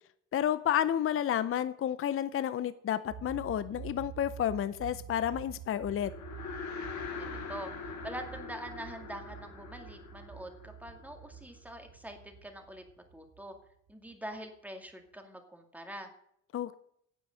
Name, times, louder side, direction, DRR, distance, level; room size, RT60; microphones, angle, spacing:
voice 1, 0.3-6.1 16.5-16.7, left 10 dB, 45° left, 14 dB, 0.6 m, -31 dB
sound 1, 3.1-14.4, right 8 dB, 70° right, 1.6 m, -48 dB
sound 2, 5.9-11.4, left 5 dB, 65° left, 2.3 m, -43 dB
voice 2, 7.2-12.8 13.1-13.5 13.9-16.1, right 1 dB, 5° right, 4 dB, 2.1 m, -44 dB
9.9 x 7.8 x 6.3 m, 0.71 s
cardioid pair, 90°, 30 cm